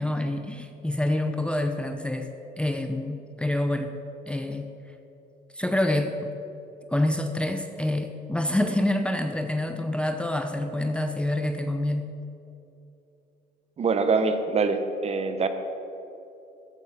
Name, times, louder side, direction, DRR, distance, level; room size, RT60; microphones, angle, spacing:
voice 1, 0.0-2.3 2.6-3.9 4.3-4.7 5.5-6.1 6.9-12.1, left 1 dB, 5° left, 6 dB, 0.7 m, -27 dB
voice 2, 13.8-15.5, right 4 dB, 40° right, 8 dB, 1.1 m, -24 dB
14.0 x 8.4 x 5.2 m, 2.9 s
cardioid pair, 110°, 17 cm